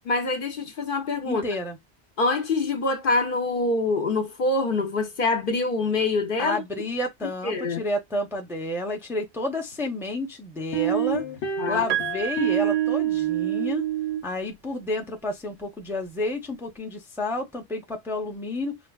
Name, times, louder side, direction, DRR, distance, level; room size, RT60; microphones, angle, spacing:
voice 1, 0.0-1.4 2.2-6.6 7.4-7.8 11.6-11.8, left 3 dB, 55° left, 0.8 m, -25 dB
voice 2, 1.3-1.8 6.4-11.3 11.7-13.9 14.2-18.8, left 2 dB, 5° right, 0.5 m, -30 dB
sound 1, 9.7-9.8 10.7-14.2, right 10 dB, 85° left, 1.2 m, -26 dB
Piano, 11.9-13.9 15.2-15.3, right 12 dB, 60° right, 0.6 m, -32 dB
5.0 x 2.3 x 2.3 m
omnidirectional pair, 1.1 m